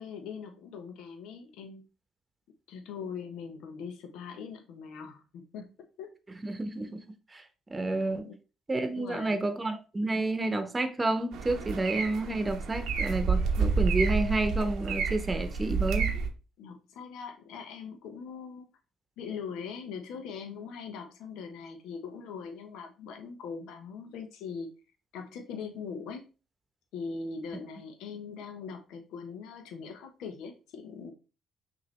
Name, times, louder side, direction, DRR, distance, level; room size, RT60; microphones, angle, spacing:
voice 1, 0.0-1.9 2.7-5.7 6.0-6.1 8.2-8.3 9.0-9.5 16.6-18.7 19.2-24.7 25.1-26.2 26.9-31.1, left 5 dB, 75° left, 0.8 m, -41 dB
voice 2, 6.4-7.0 7.3-7.4 7.7-8.3 8.7-16.1, right 2 dB, 25° right, 0.8 m, -30 dB
sound 1, 11.3-16.3, right 5 dB, 75° right, 0.8 m, -29 dB
5.8 x 2.7 x 3.2 m
supercardioid pair, 65°, 0 cm